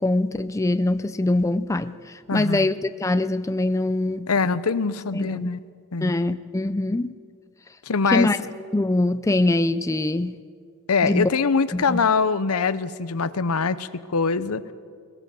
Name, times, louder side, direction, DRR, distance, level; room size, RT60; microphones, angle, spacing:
voice 1, 0.0-4.3 5.1-5.5 6.0-7.1 8.1-8.4 8.7-10.4 11.0-11.3 11.7-12.1, left 2 dB, 15° left, 11 dB, 0.4 m, -23 dB
voice 2, 2.3-2.7 4.3-5.6 5.9-6.1 7.9-8.3 10.9-14.6, left 4 dB, 75° left, 15 dB, 0.8 m, -23 dB
20.0 x 17.5 x 7.6 m, 2.1 s
head